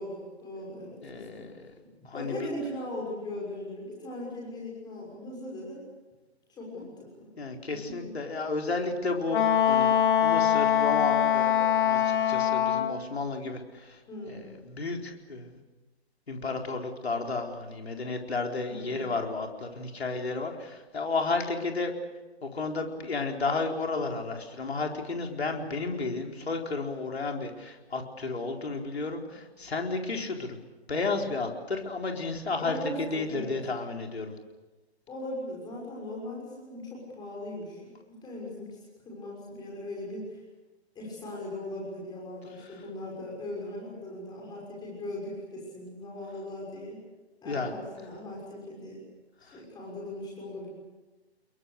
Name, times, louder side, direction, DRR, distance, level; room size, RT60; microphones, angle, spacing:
voice 1, 0.0-1.5 2.0-5.8 6.6-7.3 7.7-8.1 14.1-14.4 18.6-19.0 32.6-33.6 35.1-38.8 39.0-40.4 40.9-47.0 47.4-49.0 49.4-50.7, left 1 dB, 10° left, -3 dB, 6.4 m, -39 dB
voice 2, 1.0-1.7 2.0-2.4 7.4-9.9 10.2-14.0 14.3-15.6 16.3-21.9 22.4-30.6 30.9-34.3 47.4-47.7 49.4-49.6, left 3 dB, 70° left, 2 dB, 4.4 m, -32 dB
Wind instrument woodwind instrument, 9.3-13.0, left 10 dB, 50° left, 2.7 m, -23 dB
29.5 x 22.5 x 6.7 m, 1.2 s
figure-of-eight pair, 135°, 33 cm